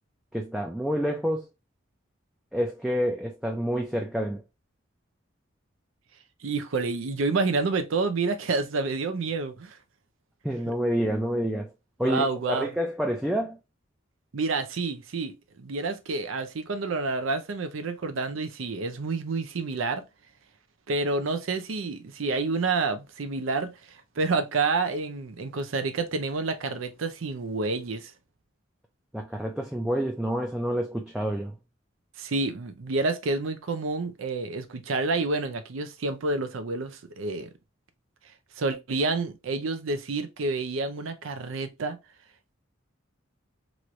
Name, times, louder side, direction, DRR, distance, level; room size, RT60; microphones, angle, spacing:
voice 1, 0.3-1.5 2.5-4.4 10.4-11.7 12.0-13.6 29.1-31.5, equal, 5° right, 0.3 m, -28 dB
voice 2, 6.4-9.8 12.0-12.7 14.3-20.0 20.9-28.1 32.2-37.5 38.6-42.0, right 3 dB, 90° right, 0.5 m, -29 dB
3.1 x 2.5 x 3.0 m
head